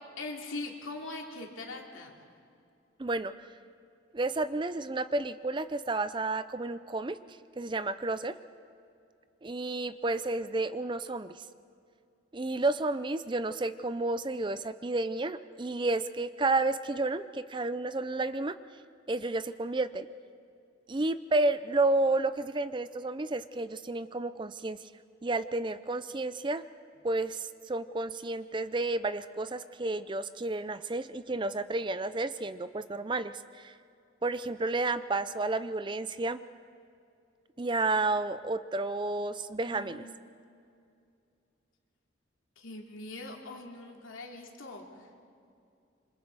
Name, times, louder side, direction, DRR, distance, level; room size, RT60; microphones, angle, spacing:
voice 1, 0.2-2.2 39.6-40.4 42.6-45.1, left 2 dB, 85° left, 1 dB, 2.9 m, -42 dB
voice 2, 3.0-3.3 4.1-7.2 7.6-8.3 9.4-11.5 12.3-18.6 19.1-20.1 20.9-24.8 25.2-26.6 27.0-33.7 34.2-36.4 37.6-40.1, right 2 dB, 25° right, 13 dB, 0.5 m, -31 dB
27.0 x 26.0 x 4.7 m, 2.4 s
head